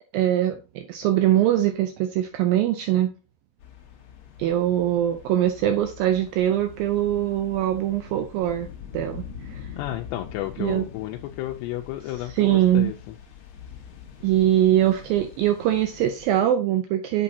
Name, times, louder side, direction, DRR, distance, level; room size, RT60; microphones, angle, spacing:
voice 1, 0.1-3.1 4.4-8.7 8.9-9.2 9.5-9.6 10.6-10.9 12.4-12.9 14.2-17.2, right 12 dB, 85° right, 2.0 m, -22 dB
sound 1, 3.6-16.4, left 8 dB, 60° left, 1.9 m, -44 dB
voice 2, 9.7-12.9, left 15 dB, 90° left, 2.8 m, -32 dB
7.7 x 6.9 x 2.7 m
omnidirectional pair, 4.8 m